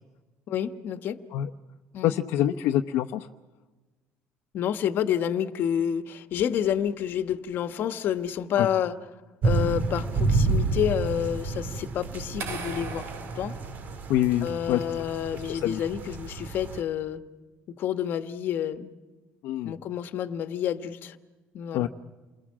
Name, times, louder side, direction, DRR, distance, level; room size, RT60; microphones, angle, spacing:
voice 1, 0.5-1.2 1.9-2.1 4.5-9.0 9.4-13.1 13.3-13.5 14.4-17.2 17.7-18.9 19.6-21.2 21.5-21.9, left 9 dB, 55° left, 10 dB, 1.3 m, -29 dB
voice 2, 2.0-3.3 8.6-8.7 14.1-14.8 15.3-15.8 19.4-19.7 21.7-21.9, left 12 dB, 75° left, 5 dB, 0.9 m, -26 dB
sound 1, 9.4-16.8, right 3 dB, 45° right, 2.2 m, -29 dB
sound 2, 12.4-14.5, right 4 dB, 65° right, 3.9 m, -39 dB
29.0 x 21.5 x 7.4 m, 1.2 s
cardioid pair, 140°, 4 cm